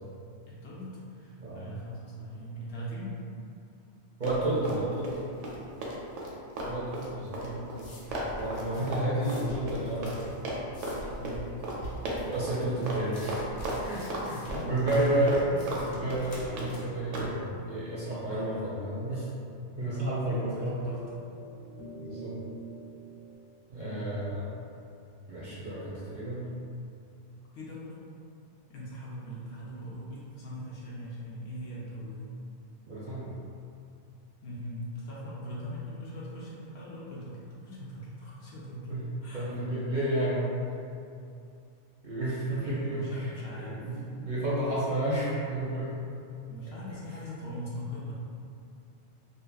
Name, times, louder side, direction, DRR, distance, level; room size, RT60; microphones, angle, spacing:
voice 1, 0.5-3.2 7.4-7.7 11.0-11.4 14.5-15.0 18.3-18.6 19.8-21.1 23.7-24.1 27.5-28.0 28.7-32.3 34.4-38.9 39.2-39.5 42.1-44.1 46.5-48.1, equal, 65° left, -6 dB, 0.8 m, -41 dB
voice 2, 4.2-5.1 6.7-7.4 8.4-10.1 12.2-13.4 13.8-19.3 19.8-20.8 22.0-22.3 23.7-24.4 25.3-26.5 32.9-33.3 38.9-39.0 39.3-40.6 42.0-43.3 43.6-45.9, right 1 dB, 50° right, -9 dB, 0.7 m, -31 dB
Run, 4.2-5.2 5.4-10.2 10.5-11.0 11.3-11.4 11.6-11.8 12.1-12.6 12.9-13.0 13.3-14.2 14.5-15.8 16.1-16.7 17.1-17.3, right 1 dB, 85° right, 0.9 m, -35 dB
sound 1, 7.8-18.6, equal, 85° left, 1.1 m, -46 dB
sound 2, 15.3-23.3, right 1 dB, 50° left, 0.3 m, -47 dB
2.8 x 2.5 x 2.2 m, 2.5 s
omnidirectional pair, 1.2 m